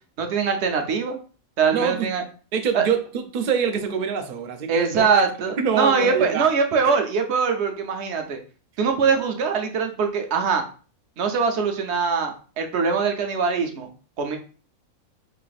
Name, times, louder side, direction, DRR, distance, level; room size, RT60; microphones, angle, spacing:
voice 1, 0.2-1.2 1.6-2.2 2.7-2.9 4.7-8.4 8.8-10.6 11.2-13.9 14.2-14.4, right 5 dB, 60° right, 0.8 m, -22 dB
voice 2, 1.7-2.1 2.5-3.0 3.3-5.1 5.6-6.5, right 7 dB, 85° right, 0.4 m, -24 dB
3.2 x 2.5 x 3.9 m
omnidirectional pair, 1.5 m